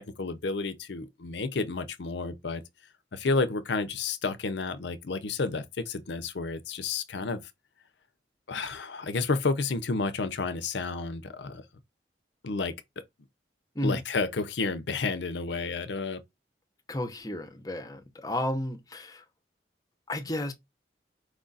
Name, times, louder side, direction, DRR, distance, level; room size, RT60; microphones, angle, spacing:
voice 1, 0.0-2.6 3.1-7.4 8.5-11.6 12.4-12.7 13.8-16.2, left 3 dB, 75° left, 0.6 m, -31 dB
voice 2, 16.9-19.2 20.1-20.5, left 1 dB, 20° left, 0.7 m, -32 dB
4.8 x 2.5 x 3.9 m
head